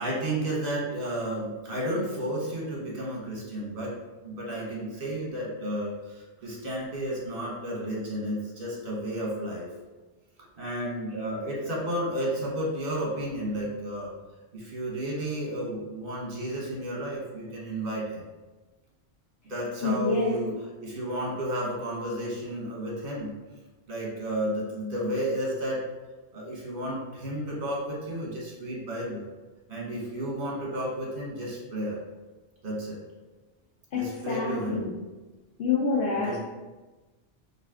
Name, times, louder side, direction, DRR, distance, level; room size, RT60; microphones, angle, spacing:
voice 1, 0.0-3.9 4.2-9.7 10.6-14.1 14.5-18.2 19.5-20.5 20.8-23.3 23.9-25.8 26.3-29.2 29.7-32.0 32.6-33.0 33.9-34.8 36.1-36.4, right 1 dB, 50° right, -4 dB, 1.3 m, -32 dB
voice 2, 19.8-20.4 33.9-34.9 35.6-36.4, left 4 dB, 70° left, -3 dB, 0.8 m, -27 dB
4.1 x 2.7 x 3.5 m, 1.2 s
omnidirectional pair, 1.2 m